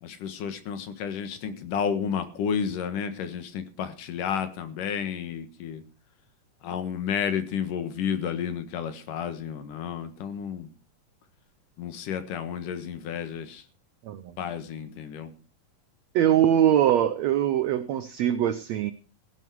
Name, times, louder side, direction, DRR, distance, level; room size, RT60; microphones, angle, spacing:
voice 1, 0.0-5.8 6.6-10.7 11.8-13.6 14.4-15.3, left 7 dB, 70° left, 11 dB, 2.9 m, -31 dB
voice 2, 14.0-14.4 16.1-18.9, right 10 dB, 85° right, 12 dB, 1.5 m, -22 dB
16.5 x 11.0 x 4.7 m, 0.34 s
omnidirectional pair, 4.1 m